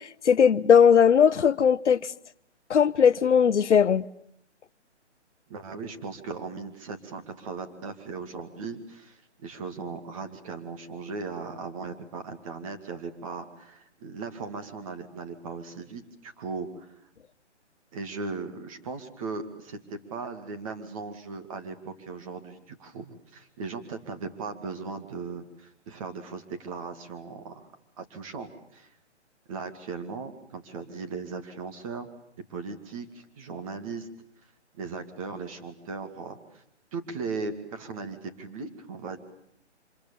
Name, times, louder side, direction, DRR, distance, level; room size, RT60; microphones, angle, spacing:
voice 1, 0.2-2.0 2.7-4.0, left 7 dB, 80° left, 1.0 m, -18 dB
voice 2, 5.5-16.9 17.9-27.6 28.0-28.9 29.5-32.1 32.5-34.1 34.7-36.6 36.9-39.2, right 4 dB, 30° right, 2.4 m, -38 dB
27.0 x 26.0 x 7.2 m
hypercardioid pair, 160°, 35 cm